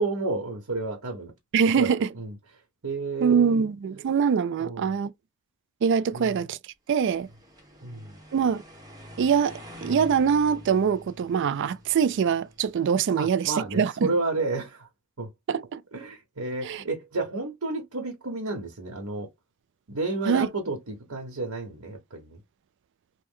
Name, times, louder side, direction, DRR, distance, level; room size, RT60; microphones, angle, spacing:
voice 1, 0.0-1.3 1.8-2.4 2.8-3.7 4.6-4.9 6.1-6.4 7.8-8.2 13.2-14.9 15.2-15.3 15.9-19.3 19.9-22.4, right 3 dB, 85° right, 1.1 m, -31 dB
voice 2, 1.5-2.1 3.2-5.1 5.8-6.6 6.9-7.3 8.3-8.6 9.2-14.1 15.5-15.8 16.6-16.8 20.3-20.5, right 6 dB, 55° right, 0.3 m, -23 dB
sound 1, 7.0-13.2, left 1 dB, 15° right, 0.9 m, -46 dB
3.1 x 2.1 x 3.6 m
head